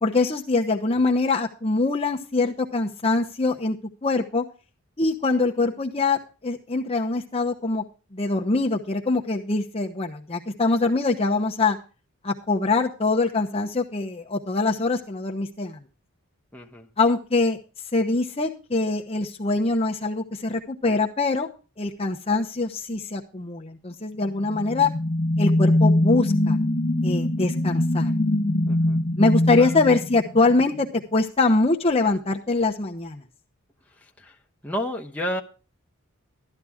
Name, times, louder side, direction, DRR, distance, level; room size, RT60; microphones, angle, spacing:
voice 1, 0.0-4.4 5.0-7.8 8.1-11.8 12.2-15.8 17.0-17.6 17.9-21.5 21.8-24.9 25.4-26.6 27.0-28.1 29.2-33.2, left 3 dB, 25° left, 1 dB, 0.9 m, -23 dB
voice 2, 16.5-16.9 28.6-29.0 29.6-29.7 34.0-34.4 34.6-35.4, equal, 5° left, 0 dB, 1.1 m, -31 dB
sound 1, 24.3-30.8, left 1 dB, 40° left, 1.3 m, -23 dB
13.0 x 11.0 x 3.6 m, 0.34 s
head